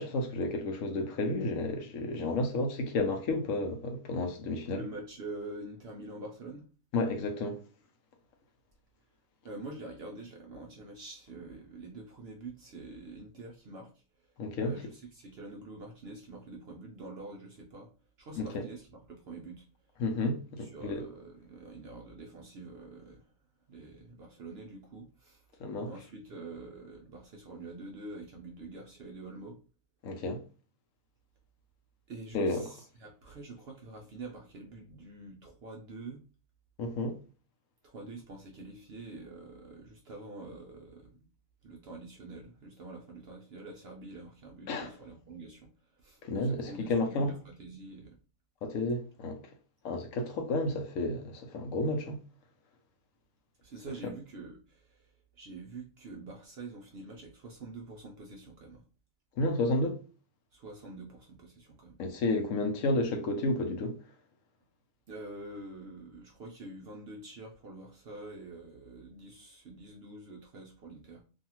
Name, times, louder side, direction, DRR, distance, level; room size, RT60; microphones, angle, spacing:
voice 1, 0.0-4.8 6.9-7.6 14.4-14.7 18.4-18.6 20.0-21.0 25.6-25.9 30.0-30.4 32.3-32.7 36.8-37.2 44.7-44.9 46.2-47.3 48.6-49.4 49.8-52.2 59.4-60.0 62.0-64.0, left 2 dB, 70° left, 0.9 m, -31 dB
voice 2, 4.7-6.7 9.4-17.9 18.2-19.9 20.6-23.3 23.7-25.5 25.8-29.6 32.1-36.2 37.8-41.3 41.6-48.2 53.6-58.8 60.5-62.0 65.1-71.2, right 2 dB, 65° right, 0.6 m, -46 dB
2.6 x 2.4 x 2.8 m
omnidirectional pair, 1.5 m